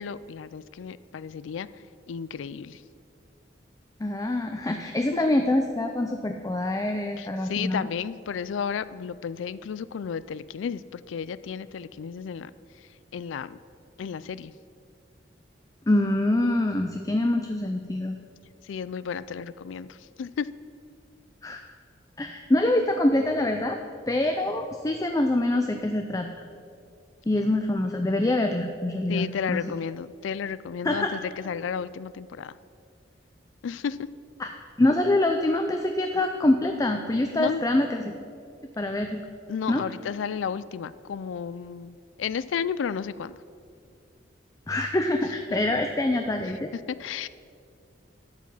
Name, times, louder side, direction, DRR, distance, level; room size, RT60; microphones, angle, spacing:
voice 1, 0.0-1.7 2.1-2.8 5.1-5.2 7.2-12.5 13.1-13.6 14.0-14.5 18.7-20.5 29.1-32.6 33.6-34.1 37.3-37.6 39.5-43.4 46.7-47.3, left 7 dB, 90° left, 17 dB, 0.4 m, -33 dB
voice 2, 4.0-7.9 15.9-18.2 21.4-21.6 22.2-23.8 24.1-26.4 27.3-29.6 30.8-31.1 34.4-34.5 34.8-38.1 38.8-39.2 39.7-39.8 44.7-46.7, left 1 dB, 20° left, 5 dB, 0.4 m, -25 dB
12.0 x 7.3 x 5.5 m, 2.3 s
head